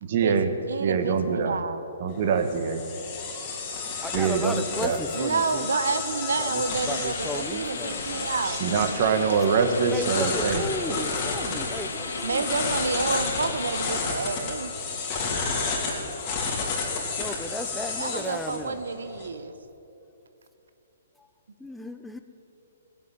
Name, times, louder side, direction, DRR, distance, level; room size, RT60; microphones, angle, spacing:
voice 1, 0.0-0.5 0.8-1.6 2.0-2.8 4.1-5.0 8.4-10.7, right 6 dB, 50° right, 8 dB, 1.5 m, -24 dB
voice 2, 0.7-1.8 5.1-8.6 10.9-11.6 12.2-14.7 18.0-19.5, right 4 dB, 80° right, 11 dB, 0.9 m, -29 dB
sound 1, 2.1-19.3, left 4 dB, 30° left, 3.6 m, -32 dB
voice 3, 4.0-5.7 6.4-8.3 9.9-12.5 16.8-18.8 21.6-22.2, left 1 dB, 5° left, 8 dB, 0.6 m, -35 dB
sound 2, 6.7-13.9, left 4 dB, 80° left, 2.3 m, -36 dB
16.5 x 7.8 x 9.8 m, 2.9 s
hypercardioid pair, 135°, 0 cm